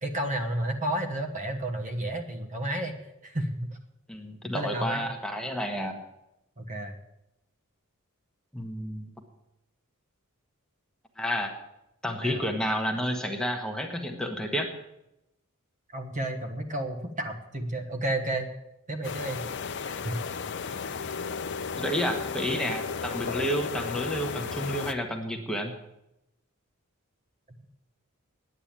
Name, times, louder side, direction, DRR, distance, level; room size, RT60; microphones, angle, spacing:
voice 1, 0.0-3.8 4.4-5.0 6.6-6.9 12.2-12.5 15.9-18.5 18.9-19.4 19.9-20.1 20.8-20.9 27.6-27.7, right 1 dB, 35° right, 5 dB, 1.3 m, -32 dB
voice 2, 4.1-6.0 8.5-9.1 11.2-11.5 12.0-14.7 21.8-25.7, equal, 5° left, 3 dB, 1.2 m, -30 dB
sound 1, 19.0-24.9, left 5 dB, 55° left, 0.7 m, -34 dB
9.9 x 8.8 x 8.8 m, 0.88 s
head